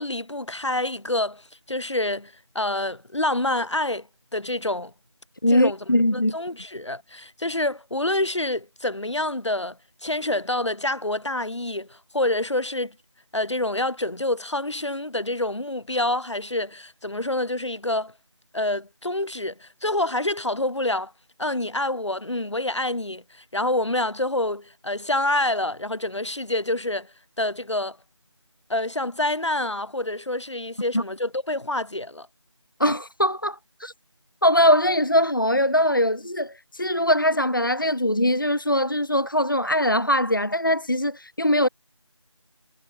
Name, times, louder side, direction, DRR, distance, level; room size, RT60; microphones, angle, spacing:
voice 1, 0.0-4.1 4.3-4.9 5.5-5.8 6.1-13.0 13.3-18.1 18.5-21.1 21.4-27.1 27.4-28.0 28.7-32.3, left 1 dB, 70° left, 1.9 m, -27 dB
voice 2, 5.4-6.4 30.9-31.0 32.8-33.9 34.4-41.7, left 1 dB, 45° left, 0.5 m, -21 dB
figure-of-eight pair, 180°, 16 cm